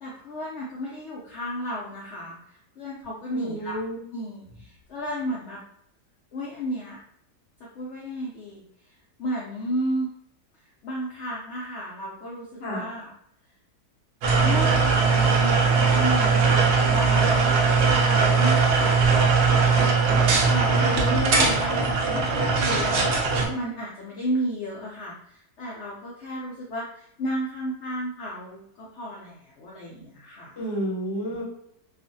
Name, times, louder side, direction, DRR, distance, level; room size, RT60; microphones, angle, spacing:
voice 1, 0.0-3.8 4.1-5.6 6.3-7.0 7.6-10.1 10.5-13.1 14.4-21.3 21.6-23.1 23.5-30.5, equal, 85° left, -4 dB, 0.6 m, -34 dB
voice 2, 3.3-4.0 12.6-12.8 20.7-21.6 30.6-31.4, left 1 dB, 50° left, -7 dB, 0.8 m, -30 dB
sound 1, 14.2-23.5, right 4 dB, 75° right, 0.6 m, -20 dB
2.4 x 2.4 x 2.6 m, 0.72 s
omnidirectional pair, 1.7 m